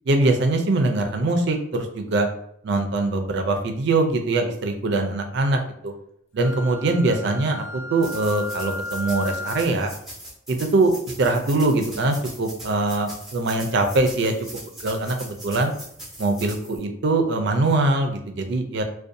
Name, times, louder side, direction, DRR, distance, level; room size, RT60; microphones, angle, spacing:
voice 1, 0.1-2.3 2.6-5.9 6.3-9.9 10.5-14.5 14.8-15.7 16.2-18.8, right 2 dB, 60° right, 4 dB, 0.4 m, -22 dB
Wind instrument woodwind instrument, 6.4-9.8, left 2 dB, 80° left, 0.4 m, -35 dB
sound 1, 8.0-16.8, right 1 dB, ahead, 0.6 m, -41 dB
2.6 x 2.2 x 2.5 m, 0.70 s
head